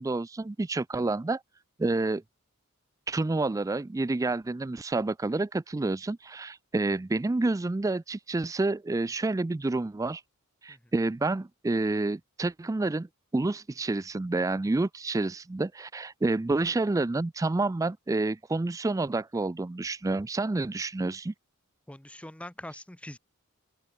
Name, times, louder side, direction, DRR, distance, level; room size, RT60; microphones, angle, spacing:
voice 1, 0.0-1.4 1.8-2.2 3.1-10.2 10.6-13.1 13.3-21.3, right 2 dB, 15° right, 0.3 m, -29 dB
voice 2, 21.9-23.2, left 1 dB, 5° left, 0.8 m, -43 dB
open air
head